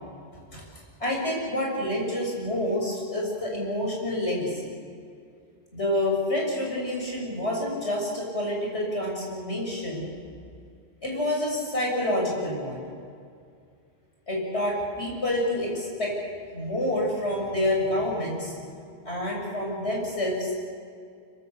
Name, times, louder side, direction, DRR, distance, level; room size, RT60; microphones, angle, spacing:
voice 1, 1.0-4.7 5.7-10.1 11.0-12.8 14.3-16.1 16.5-18.5 19.0-20.6, left 1 dB, 65° left, -2 dB, 7.6 m, -28 dB
26.0 x 25.0 x 7.0 m, 2.3 s
omnidirectional pair, 1.2 m